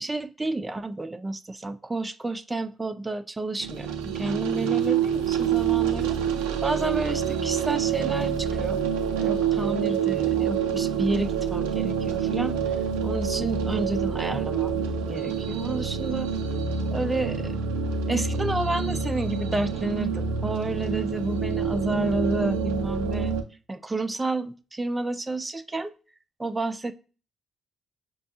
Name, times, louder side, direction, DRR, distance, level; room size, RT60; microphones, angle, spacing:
voice 1, 0.0-6.2 6.6-8.8 9.1-12.5 13.0-16.3 16.9-17.6 18.1-23.3 23.7-25.9 26.4-26.9, right 2 dB, 20° right, 0.5 m, -30 dB
sound 1, 3.6-23.4, right 7 dB, 80° right, 0.4 m, -27 dB
5.2 x 2.1 x 2.8 m
hypercardioid pair, 45°, 0 cm